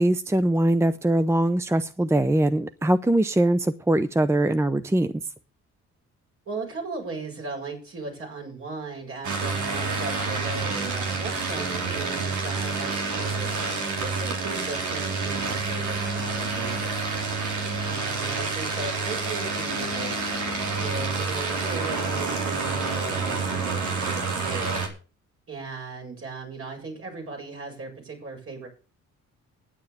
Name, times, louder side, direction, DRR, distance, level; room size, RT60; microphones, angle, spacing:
voice 1, 0.0-5.1, right 1 dB, 10° right, 13 dB, 0.7 m, -22 dB
voice 2, 6.5-13.5 14.0-17.0 17.9-20.1 20.8-24.8 25.5-28.7, right 3 dB, 45° right, 1 dB, 7.6 m, -37 dB
sound 1, 9.2-24.9, right 4 dB, 75° right, 4.1 m, -28 dB
10.0 x 9.5 x 6.9 m, 0.35 s
cardioid pair, 90°, 30 cm